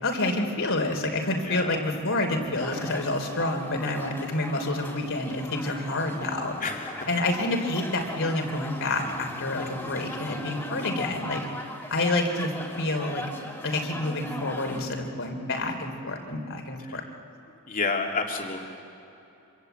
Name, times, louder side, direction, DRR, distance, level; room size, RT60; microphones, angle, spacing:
voice 1, 0.0-6.6 7.1-11.5 11.9-12.5 12.8-13.2 13.6-17.0, left 2 dB, 65° left, 3 dB, 3.4 m, -28 dB
voice 2, 1.4-1.9 6.6-7.1 16.9-17.0 17.7-18.6, left 4 dB, 40° left, 1 dB, 3.0 m, -30 dB
sound 1, 2.5-14.8, left 1 dB, 10° left, 3.3 m, -39 dB
27.0 x 26.0 x 8.1 m, 2.9 s
head